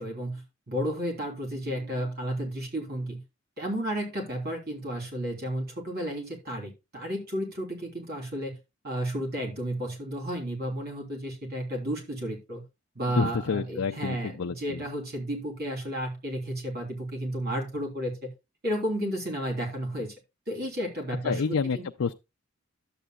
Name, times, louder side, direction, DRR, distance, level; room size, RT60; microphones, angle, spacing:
voice 1, 0.0-3.2 3.6-8.6 8.8-12.6 12.9-18.3 18.6-20.1 20.5-21.8, equal, 50° right, 3.3 m, -32 dB
voice 2, 13.1-14.9 21.2-22.1, left 5 dB, 85° left, 0.5 m, -29 dB
12.0 x 7.9 x 2.3 m
head